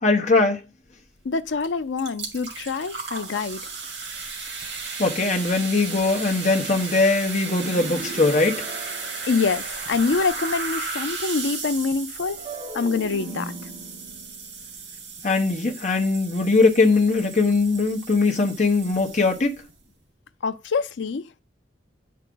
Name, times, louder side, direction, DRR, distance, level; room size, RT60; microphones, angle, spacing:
voice 1, 0.0-0.6 5.0-8.7 15.2-19.5, left 3 dB, 40° left, 1.1 m, -21 dB
voice 2, 1.2-3.6 9.3-12.4 12.7-13.5 20.4-21.3, left 4 dB, 80° left, 0.5 m, -25 dB
sound 1, 1.6-1.7 2.0-19.7, right 4 dB, 70° right, 2.5 m, -35 dB
sound 2, 7.5-9.9 12.3-15.6, right 2 dB, 20° right, 3.2 m, -38 dB
9.7 x 4.8 x 3.9 m
head